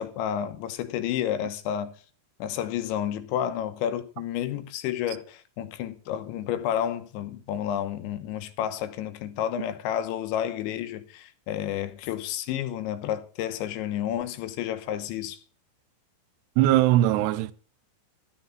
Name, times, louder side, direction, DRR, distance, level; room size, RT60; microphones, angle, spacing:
voice 1, 0.0-1.9 2.4-15.4, left 10 dB, 75° left, 3.4 m, -30 dB
voice 2, 16.6-17.5, right 14 dB, 80° right, 2.6 m, -21 dB
13.5 x 7.9 x 7.2 m
omnidirectional pair, 5.4 m